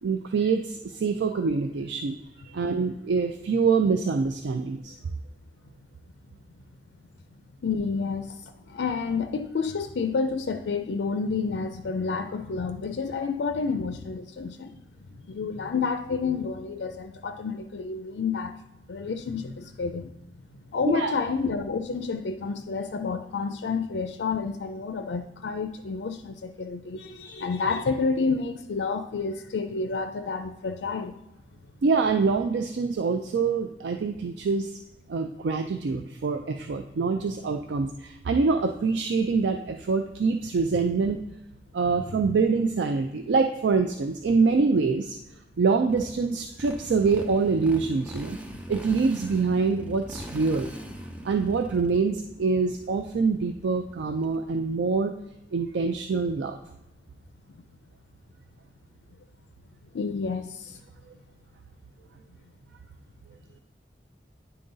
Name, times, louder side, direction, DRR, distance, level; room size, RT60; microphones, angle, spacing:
voice 1, 0.0-2.2 2.5-4.9 20.9-21.1 31.8-34.8 35.1-41.2 41.7-45.2 45.6-48.4 48.7-50.7 51.2-55.1 55.5-56.6, right 4 dB, 80° right, 6 dB, 0.4 m, -25 dB
voice 2, 7.6-14.8 15.3-18.6 18.9-20.1 20.7-31.1 41.9-42.0 59.9-60.8, left 4 dB, 75° left, 8 dB, 0.4 m, -29 dB
Motorcycle, 45.9-54.5, equal, 10° right, 0.5 m, -41 dB
9.5 x 3.8 x 3.9 m, 0.89 s
head